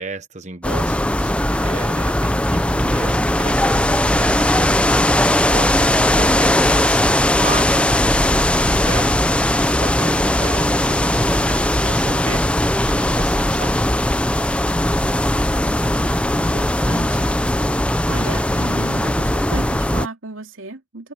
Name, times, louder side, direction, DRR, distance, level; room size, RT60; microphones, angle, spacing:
voice 1, 0.0-7.7 8.6-12.4 12.8-13.8, right 3 dB, 35° right, 1.2 m, -33 dB
sound 1, 0.6-20.1, left 1 dB, 5° left, 0.7 m, -18 dB
voice 2, 15.6-21.1, right 3 dB, 90° right, 2.8 m, -35 dB
head